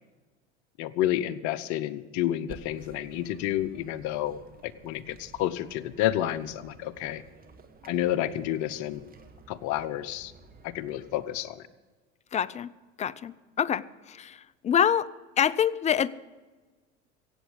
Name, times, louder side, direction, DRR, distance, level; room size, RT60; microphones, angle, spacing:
voice 1, 0.8-7.2 7.8-9.0 9.5-10.3 10.6-11.6, left 13 dB, 55° left, 15 dB, 0.9 m, -30 dB
sound 1, 2.5-11.4, right 3 dB, 25° right, 1.8 m, -52 dB
voice 2, 12.3-12.7 13.0-13.8 14.1-14.3 14.6-15.1 15.4-16.1, left 8 dB, 20° left, 20 dB, 0.4 m, -25 dB
16.5 x 8.2 x 8.0 m, 1.3 s
hypercardioid pair, 80°, 35 cm